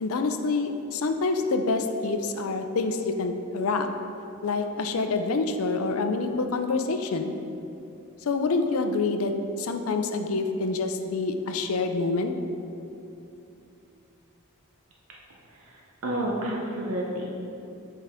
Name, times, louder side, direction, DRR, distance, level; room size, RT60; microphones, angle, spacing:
voice 1, 0.0-3.9 4.4-7.3 8.2-12.3, left 3 dB, 70° left, 7 dB, 0.5 m, -27 dB
voice 2, 15.5-17.2, right 1 dB, 65° right, -3 dB, 0.7 m, -30 dB
8.0 x 4.7 x 3.5 m, 2.7 s
head